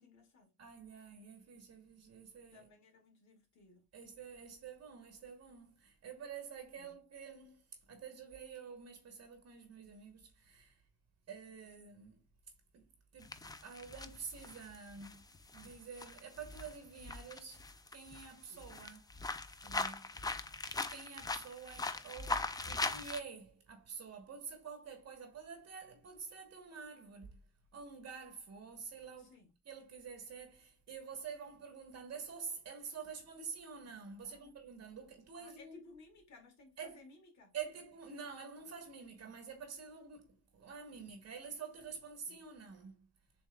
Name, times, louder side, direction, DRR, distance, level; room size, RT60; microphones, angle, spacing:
voice 1, 0.0-0.5 2.5-3.8 6.7-7.0 18.4-18.7 29.2-29.5 34.2-34.5 35.4-37.6 42.3-42.5, left 3 dB, 65° left, 1.8 m, -60 dB
voice 2, 0.6-2.6 3.9-10.8 11.3-12.3 12.7-15.3 15.5-17.6 17.9-19.1 19.6-20.1 20.9-27.4 27.7-29.4 29.6-35.8 36.8-37.0 37.5-43.1, right 6 dB, 60° right, 1.1 m, -48 dB
sound 1, 13.2-18.3 18.6-23.2, left 3 dB, 15° left, 0.4 m, -40 dB
6.6 x 3.0 x 2.2 m
cardioid pair, 90°, 30 cm